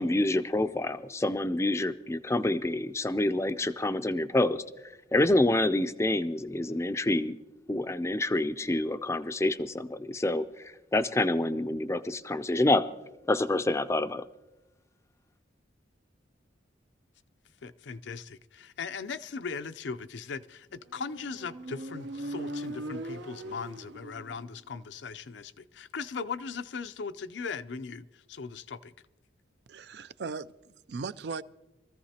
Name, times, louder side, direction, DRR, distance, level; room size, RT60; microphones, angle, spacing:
voice 1, 0.0-4.6 5.1-7.3 7.7-12.9 13.3-14.2, left 1 dB, 15° left, 0.4 m, -27 dB
voice 2, 17.6-28.9, left 5 dB, 75° left, 0.5 m, -39 dB
Motorcycle, 21.0-24.6, right 1 dB, 75° right, 0.8 m, -40 dB
voice 3, 29.7-31.4, right 4 dB, 60° right, 0.4 m, -38 dB
23.0 x 14.5 x 2.9 m
head